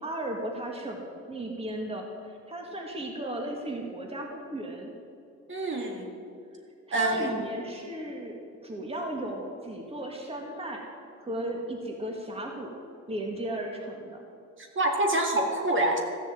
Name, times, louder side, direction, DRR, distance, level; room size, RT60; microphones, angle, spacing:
voice 1, 0.0-4.9 6.9-8.4 8.6-10.8 11.2-12.7 13.1-14.2, right 1 dB, 20° right, 0 dB, 1.9 m, -35 dB
voice 2, 5.5-6.1 6.9-7.4 14.6-16.0, right 1 dB, 40° right, 1 dB, 2.1 m, -26 dB
14.0 x 7.0 x 7.5 m, 2.5 s
cardioid pair, 90°, 30 cm